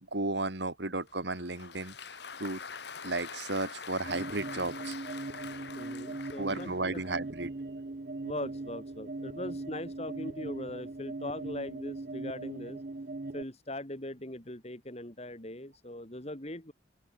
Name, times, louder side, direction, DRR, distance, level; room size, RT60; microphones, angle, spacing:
voice 1, 0.1-1.9 2.4-2.6 3.0-4.9 6.4-7.5, right 2 dB, 65° right, 2.5 m, -33 dB
Applause, 1.1-7.3, left 5 dB, 60° left, 1.5 m, -45 dB
sound 1, 4.0-13.4, right 2 dB, 45° right, 0.7 m, -40 dB
voice 2, 5.7-7.0 8.2-12.8 13.3-16.7, left 1 dB, 35° left, 2.5 m, -40 dB
open air
head